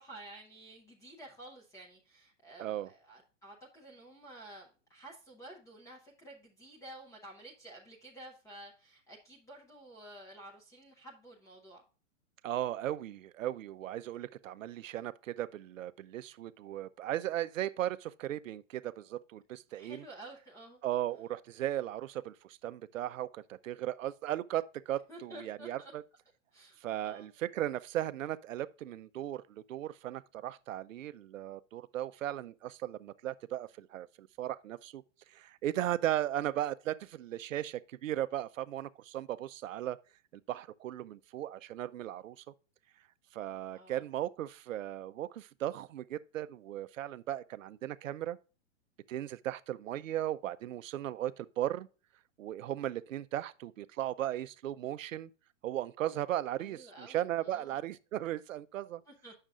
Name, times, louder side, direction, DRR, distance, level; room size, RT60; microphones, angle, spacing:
voice 1, 0.0-11.8 19.8-20.8 25.1-25.9 26.5-27.3 43.7-44.0 56.6-57.2 57.4-57.7 59.1-59.3, right 1 dB, 10° left, 0.7 m, -51 dB
voice 2, 2.6-2.9 12.4-20.0 20.8-26.0 26.8-35.0 35.3-40.0 40.5-42.4 43.3-48.4 49.1-51.9 52.4-55.3 55.6-59.0, right 12 dB, 80° right, 0.6 m, -37 dB
8.8 x 6.5 x 2.4 m
hypercardioid pair, 150°, 39 cm